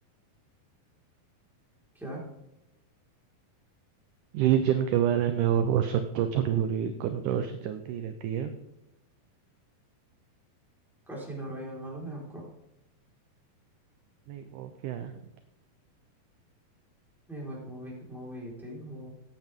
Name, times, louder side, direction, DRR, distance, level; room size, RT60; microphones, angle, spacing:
voice 1, 4.3-8.5 14.3-15.1, right 10 dB, 75° right, 8 dB, 2.0 m, -27 dB
voice 2, 11.1-12.5 17.3-19.1, right 1 dB, ahead, -5 dB, 4.2 m, -40 dB
15.5 x 9.3 x 3.7 m, 0.88 s
omnidirectional pair, 4.2 m